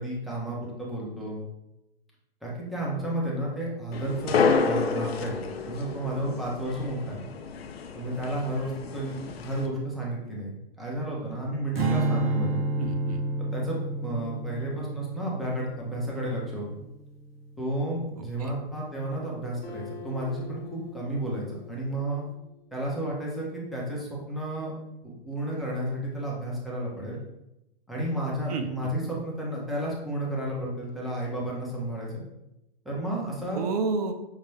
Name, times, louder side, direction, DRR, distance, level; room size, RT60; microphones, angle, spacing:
voice 1, 0.0-1.4 2.4-5.4 5.7-7.2 7.9-12.6 13.5-16.8 17.6-22.2 22.7-24.7 25.0-27.2 27.9-32.1 32.8-33.6, right 1 dB, ahead, -5 dB, 0.6 m, -32 dB
sound 1, 3.9-9.7, left 5 dB, 75° left, 0.6 m, -30 dB
Strum, 11.8-18.1, right 2 dB, 70° right, 0.9 m, -30 dB
voice 2, 12.8-13.2 18.2-18.5 28.5-28.9 33.5-34.1, right 4 dB, 40° right, 6 dB, 0.4 m, -30 dB
Acoustic guitar, 19.6-23.2, left 7 dB, 30° left, 1.0 m, -46 dB
5.4 x 2.1 x 3.2 m, 0.89 s
hypercardioid pair, 135°, 30 cm